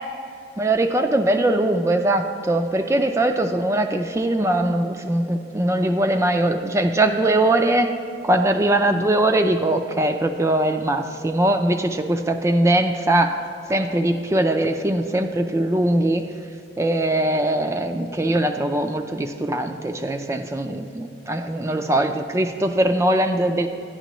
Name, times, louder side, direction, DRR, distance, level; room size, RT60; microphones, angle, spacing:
voice 1, 0.6-7.9 8.2-13.4 13.7-16.2 16.8-23.7, right 1 dB, 15° right, 6 dB, 0.3 m, -21 dB
10.5 x 10.0 x 3.0 m, 2.6 s
head